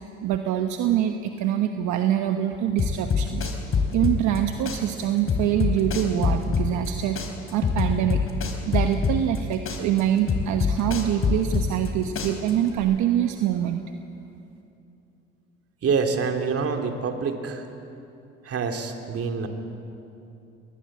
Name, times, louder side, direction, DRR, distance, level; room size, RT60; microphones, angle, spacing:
voice 1, 0.2-3.5 3.9-7.2 7.5-8.2 8.6-13.8, right 11 dB, 75° right, 6 dB, 1.1 m, -25 dB
sound 1, 2.8-4.4 4.7-6.9 7.2-9.4 9.7-11.9 12.2-12.8, left 5 dB, 50° left, 4.1 m, -24 dB
voice 2, 15.8-17.7 18.4-19.5, right 5 dB, 50° right, 4 dB, 2.9 m, -26 dB
22.0 x 19.0 x 8.6 m, 2.8 s
supercardioid pair, 65°, 29 cm